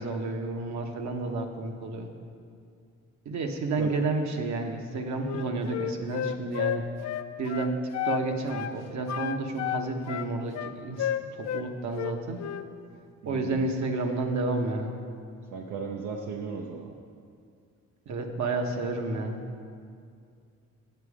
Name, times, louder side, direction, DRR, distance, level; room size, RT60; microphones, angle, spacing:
voice 1, 0.0-2.1 3.2-6.8 7.4-7.8 8.0-12.4 13.2-14.9 18.1-19.4, right 3 dB, 70° right, 4 dB, 1.2 m, -31 dB
Wind instrument woodwind instrument, 5.2-8.2 8.5-8.8 9.1-11.6 11.9-12.7, left 10 dB, 60° left, 0.5 m, -32 dB
voice 2, 13.2-13.7 15.5-16.9, right 5 dB, 85° right, 0 dB, 0.8 m, -36 dB
9.1 x 8.2 x 4.9 m, 2.3 s
cardioid pair, 90°, 30 cm